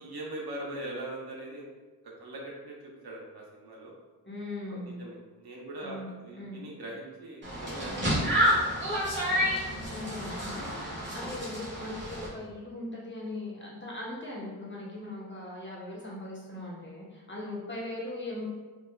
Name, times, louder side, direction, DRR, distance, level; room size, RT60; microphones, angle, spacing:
voice 1, 0.0-1.7 2.0-3.9 4.7-9.4, right 1 dB, 80° right, -2 dB, 0.8 m, -42 dB
voice 2, 4.2-5.0 5.8-6.1 6.4-6.5 9.9-18.4, left 2 dB, 30° left, -5 dB, 1.0 m, -39 dB
sound 1, 7.4-12.3, equal, 30° right, 1.2 m, -29 dB
4.6 x 2.3 x 2.2 m, 1.4 s
wide cardioid pair, 85°, 37 cm